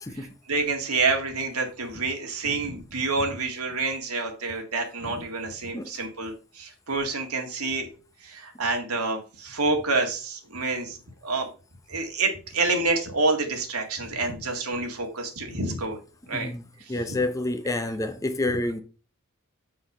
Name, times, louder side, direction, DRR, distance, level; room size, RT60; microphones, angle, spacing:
voice 1, 0.1-7.9 8.2-11.5 11.9-16.0 16.3-16.5 16.9-17.0, right 3 dB, 85° right, 1.9 m, -28 dB
voice 2, 16.3-18.8, left 2 dB, 15° left, 0.7 m, -29 dB
5.8 x 5.0 x 5.4 m
head